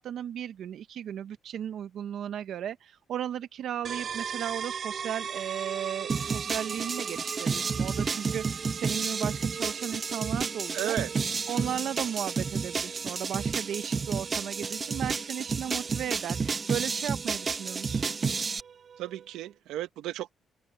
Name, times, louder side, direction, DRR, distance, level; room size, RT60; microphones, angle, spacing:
voice 1, 0.0-11.0 11.5-18.1, right 10 dB, 70° right, 0.9 m, -35 dB
sound 1, 3.9-19.4, right 7 dB, 50° right, 5.9 m, -41 dB
sound 2, 6.1-18.6, right 5 dB, 35° right, 1.0 m, -31 dB
voice 2, 10.7-11.1 19.0-20.3, right 13 dB, 90° right, 1.2 m, -34 dB
cardioid pair, 90°, 0 cm